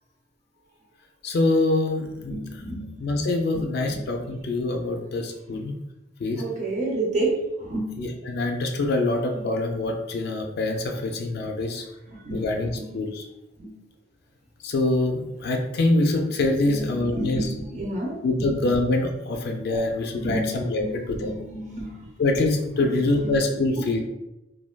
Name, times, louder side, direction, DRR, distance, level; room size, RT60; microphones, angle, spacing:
voice 1, 1.2-2.4 3.0-5.7 6.2-6.4 8.0-11.8 12.3-13.2 14.6-17.5 18.2-20.8 21.1-21.3 22.2-24.0, left 2 dB, 55° left, 3 dB, 0.3 m, -25 dB
voice 2, 2.2-3.1 3.5-4.4 5.5-5.7 6.4-8.1 9.3-9.5 10.9-11.0 11.6-11.7 12.1-12.9 13.6-13.8 16.6-18.8 19.7-19.8 20.2-22.2 22.8-23.6 23.9-24.0, right 2 dB, 40° right, -2 dB, 0.6 m, -32 dB
3.3 x 2.2 x 2.2 m, 0.93 s
head